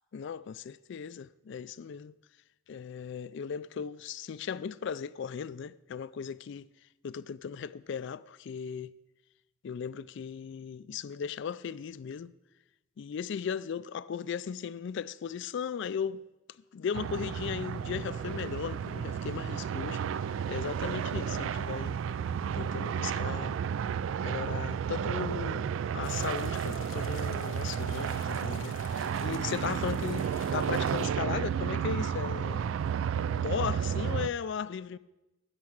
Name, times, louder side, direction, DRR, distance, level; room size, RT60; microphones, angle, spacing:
voice 1, 0.1-2.1 2.7-6.7 7.0-8.9 9.6-12.3 13.0-16.2 16.7-22.0 22.5-23.6 24.2-32.8 33.1-35.0, left 7 dB, 65° left, 0.4 m, -37 dB
sound 1, 16.9-34.3, right 7 dB, 70° right, 0.3 m, -32 dB
sound 2, 26.0-31.1, left 7 dB, 80° left, 0.8 m, -49 dB
12.5 x 5.9 x 8.5 m
head